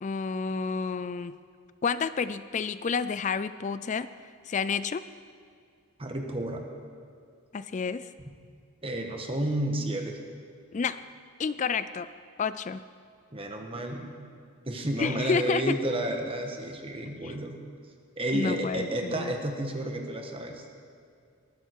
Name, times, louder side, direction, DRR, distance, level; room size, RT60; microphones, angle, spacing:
voice 1, 0.0-1.3 1.8-4.1 4.5-5.0 7.5-8.1 10.7-11.0 11.4-12.1 12.4-12.8 15.0-15.8 17.2-17.3 18.3-19.3, left 5 dB, 35° left, 14 dB, 0.3 m, -30 dB
voice 2, 6.0-6.6 8.8-10.2 13.3-14.2 14.6-17.6 18.2-20.6, right 1 dB, 25° right, 3 dB, 1.4 m, -31 dB
19.5 x 13.5 x 4.7 m, 2.4 s
head